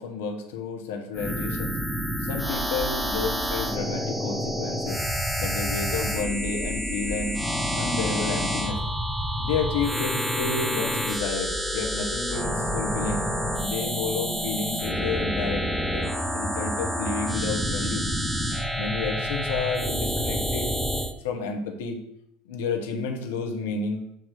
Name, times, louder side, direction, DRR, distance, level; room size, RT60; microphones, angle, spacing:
voice 1, 0.0-1.8 2.2-5.0 5.4-7.4 7.7-8.8 9.4-13.3 13.6-15.7 15.9-18.0 18.8-20.7 21.2-22.0 22.4-24.0, left 4 dB, 70° left, 3 dB, 1.1 m, -31 dB
sound 1, 1.1-21.1, equal, ahead, 0.8 m, -28 dB
7.1 x 3.1 x 6.0 m, 0.77 s
hypercardioid pair, 80°, 0 cm